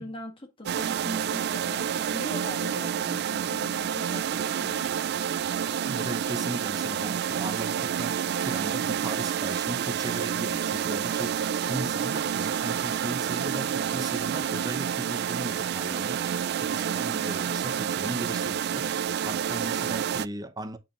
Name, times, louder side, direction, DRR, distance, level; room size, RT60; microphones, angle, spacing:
voice 1, 0.0-4.9, left 1 dB, 25° left, 1.8 m, -41 dB
sound 1, 0.7-20.3, right 8 dB, 55° right, 0.3 m, -29 dB
voice 2, 5.9-16.2 16.6-20.8, right 1 dB, 20° right, 0.9 m, -37 dB
9.0 x 5.1 x 2.6 m
head